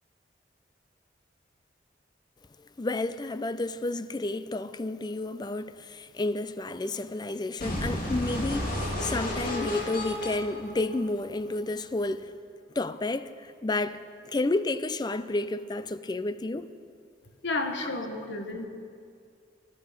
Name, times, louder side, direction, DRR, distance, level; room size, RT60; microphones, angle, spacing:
voice 1, 2.8-12.3 12.7-16.7 17.8-17.9, left 2 dB, 25° left, 0.5 m, -31 dB
sound 1, 7.6-11.6, left 1 dB, 55° left, 2.9 m, -32 dB
voice 2, 17.4-18.7, left 2 dB, 80° left, 1.5 m, -31 dB
19.0 x 12.5 x 5.2 m
head